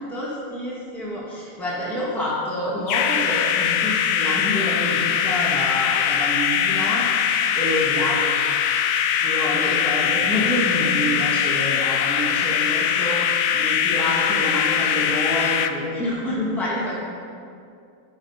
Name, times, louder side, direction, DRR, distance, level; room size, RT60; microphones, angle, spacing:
voice 1, 0.1-7.0 7.5-8.3 9.2-17.0, left 1 dB, ahead, -7 dB, 1.7 m, -27 dB
sound 1, 2.9-15.7, left 8 dB, 70° left, 0.9 m, -22 dB
13.0 x 5.8 x 5.7 m, 2.4 s
omnidirectional pair, 1.7 m